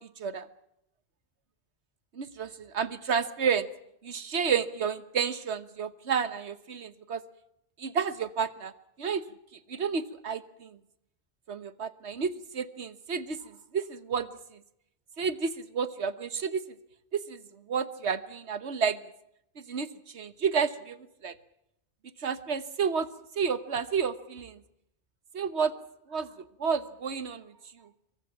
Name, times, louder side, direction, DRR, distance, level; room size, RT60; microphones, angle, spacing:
voice 1, 2.2-3.7 4.0-7.2 7.8-8.7 9.0-9.2 9.7-10.8 11.5-14.3 15.2-16.6 17.1-17.4 17.7-19.0 19.7-19.9 20.1-21.3 22.2-23.1 23.4-24.6 25.3-25.7 26.1-26.3 26.6-27.4, right 6 dB, 85° right, 13 dB, 1.4 m, -30 dB
27.0 x 23.5 x 5.8 m, 0.80 s
omnidirectional pair, 1.1 m